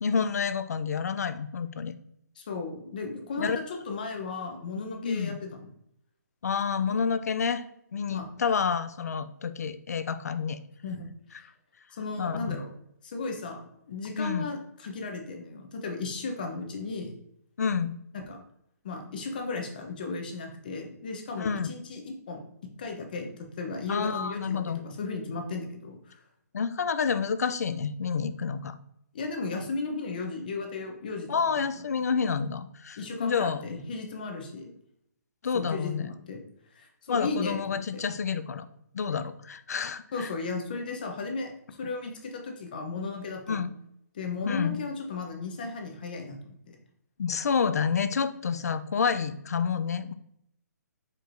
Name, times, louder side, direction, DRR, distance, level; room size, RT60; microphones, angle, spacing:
voice 1, 0.0-1.9 3.4-3.6 5.0-5.4 6.4-7.6 7.9-10.6 12.2-12.6 14.2-14.5 17.6-18.0 21.4-21.7 23.9-24.8 26.5-28.8 31.3-33.6 35.4-36.1 37.1-38.7 38.9-40.3 43.5-43.7 44.5-44.8 47.2-50.1, left 6 dB, 60° left, 12 dB, 0.4 m, -29 dB
voice 2, 2.4-5.7 8.1-8.3 10.8-11.0 11.9-12.7 13.0-17.1 18.1-18.4 18.8-22.4 22.8-24.5 24.8-26.2 29.1-31.3 33.0-34.7 35.5-36.4 36.7-38.0 40.1-43.6 44.1-46.8, left 3 dB, 30° left, 3 dB, 0.7 m, -35 dB
4.6 x 4.5 x 2.5 m, 0.75 s
hypercardioid pair, 175°, 10 cm